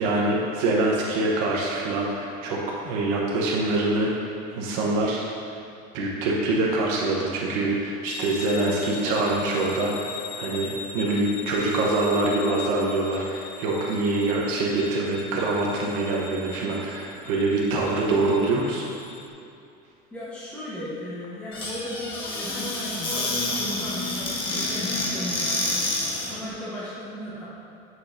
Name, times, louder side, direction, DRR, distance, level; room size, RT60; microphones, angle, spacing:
voice 1, 0.0-5.2 5.9-18.8, right 2 dB, 80° right, -3 dB, 1.0 m, -25 dB
sound 1, 8.0-19.3, left 6 dB, 45° left, 0.5 m, -40 dB
voice 2, 20.1-25.6 26.3-27.5, equal, 10° left, -11 dB, 1.2 m, -36 dB
Squeak / Cupboard open or close, 21.5-26.4, left 2 dB, 25° left, 1.0 m, -28 dB
8.7 x 6.1 x 2.6 m, 2.6 s
cardioid pair, 160°, 19 cm